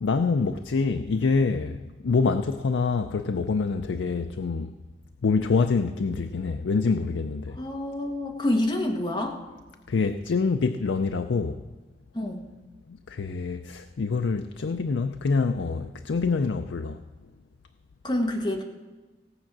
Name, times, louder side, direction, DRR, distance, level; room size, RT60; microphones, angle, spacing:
voice 1, 0.0-4.7 5.2-7.6 9.9-11.6 12.9-17.0, left 4 dB, 80° left, 0.4 m, -26 dB
voice 2, 7.6-9.4 12.1-12.5 18.0-18.6, left 1 dB, 25° left, 1.3 m, -27 dB
17.0 x 7.3 x 6.0 m
head